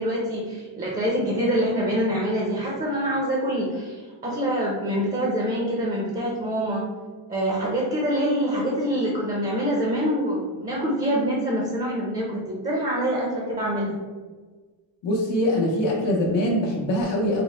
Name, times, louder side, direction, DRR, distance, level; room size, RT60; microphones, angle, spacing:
voice 1, 0.0-6.8 7.3-14.0, equal, 20° right, -4 dB, 0.6 m, -25 dB
voice 2, 15.0-17.4, left 1 dB, 90° left, -3 dB, 0.8 m, -23 dB
3.4 x 2.0 x 4.1 m, 1.4 s
wide cardioid pair, 145°, 42 cm